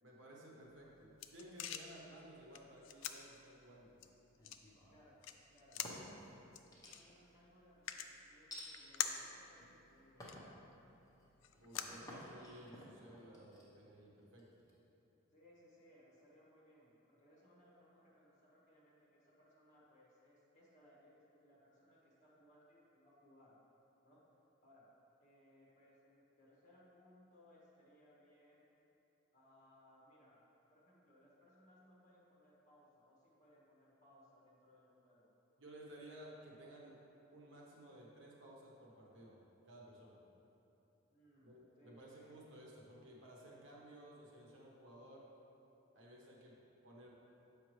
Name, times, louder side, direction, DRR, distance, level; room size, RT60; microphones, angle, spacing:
voice 1, 0.0-4.0 5.7-5.9 11.6-14.6 35.6-37.0 37.3-39.4 39.7-40.2 41.4-45.2 45.9-46.6 46.8-47.1, right 1 dB, 65° right, -3 dB, 1.0 m, -56 dB
sound 1, 0.6-12.7, left 9 dB, 70° left, 0.3 m, -48 dB
sound 2, 4.4-5.1 5.6-6.3 6.7-7.3 8.5-8.7 9.4-9.8 10.2-10.5 11.0-14.7, left 1 dB, 20° left, 0.9 m, -54 dB
voice 2, 4.9-5.2 5.5-5.8 6.2-6.6 6.9-10.4 15.3-23.6 24.0-24.2 24.6-24.9 25.2-28.7 29.3-30.4 30.7-35.3 41.1-42.4 46.3-46.7, equal, 35° left, -6 dB, 1.4 m, -66 dB
7.1 x 5.2 x 3.1 m, 3.0 s
head